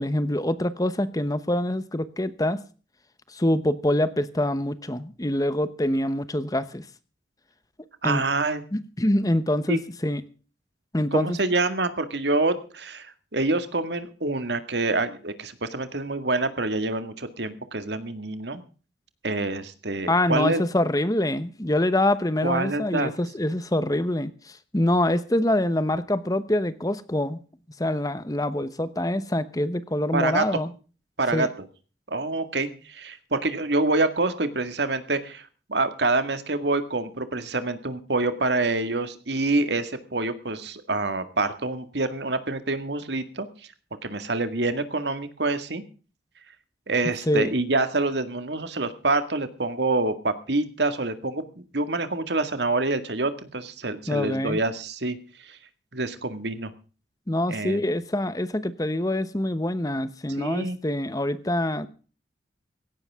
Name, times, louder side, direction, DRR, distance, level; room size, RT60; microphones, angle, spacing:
voice 1, 0.0-2.6 3.3-6.8 8.0-8.2 8.7-10.2 10.9-11.4 20.1-27.4 27.8-30.7 31.3-31.5 47.3-47.5 54.1-54.6 57.3-61.9, left 1 dB, 20° left, 14 dB, 0.9 m, -25 dB
voice 2, 8.0-8.6 9.7-9.8 11.1-18.6 19.2-20.6 22.4-23.1 30.1-30.4 31.2-31.5 32.1-43.5 44.0-45.8 46.9-51.4 51.7-55.2 55.4-55.6 55.9-56.7 57.5-57.8 60.4-60.8, right 2 dB, 75° right, 10 dB, 2.0 m, -26 dB
17.0 x 16.5 x 3.6 m, 0.37 s
head